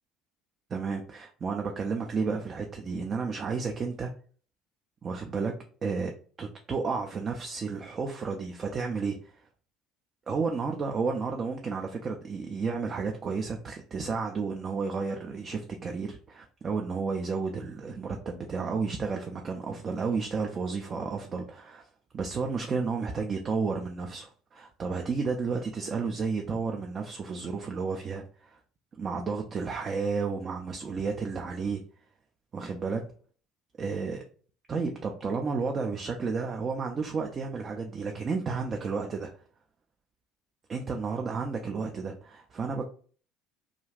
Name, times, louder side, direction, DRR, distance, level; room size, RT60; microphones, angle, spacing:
voice 1, 0.7-4.1 5.0-5.5 5.8-6.1 6.4-9.5 10.3-21.9 22.1-28.6 29.0-31.8 32.5-33.0 33.8-34.2 34.7-39.3 40.7-42.9, right 4 dB, 35° right, 2 dB, 0.4 m, -32 dB
2.4 x 2.3 x 3.2 m, 0.43 s
figure-of-eight pair, 60°, 0 cm